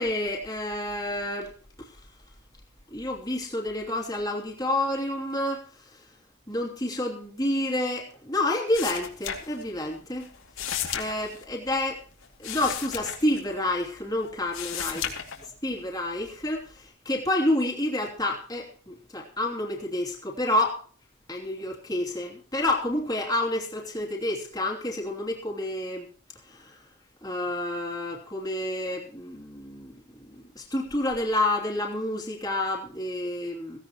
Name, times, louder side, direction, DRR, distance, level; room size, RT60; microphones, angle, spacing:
voice 1, 0.0-1.9 2.9-5.6 6.5-10.3 10.9-12.0 12.4-15.1 15.6-20.8 21.3-26.1 26.5-26.8 27.2-33.8, left 1 dB, 20° left, -1 dB, 2.9 m, -29 dB
sound 1, 8.7-9.9 10.2-14.0 14.3-15.8 16.2-16.8, left 9 dB, 85° left, 2.7 m, -35 dB
16.5 x 16.5 x 3.0 m, 0.42 s
head